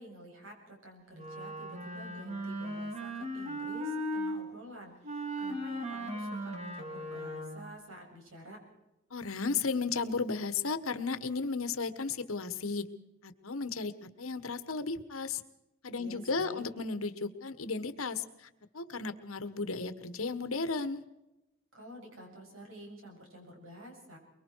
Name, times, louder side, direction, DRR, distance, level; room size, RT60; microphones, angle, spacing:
voice 1, 0.0-8.6 16.0-16.6 21.7-24.2, right 1 dB, 75° right, 1 dB, 7.4 m, -50 dB
Wind instrument woodwind instrument, 1.1-4.4 5.0-7.8, equal, 30° right, 3.1 m, -37 dB
voice 2, 9.1-12.8 13.2-13.9 14.2-15.4 15.8-18.5 18.7-21.0, left 4 dB, 85° left, 12 dB, 1.4 m, -34 dB
24.0 x 23.0 x 4.7 m, 0.94 s
head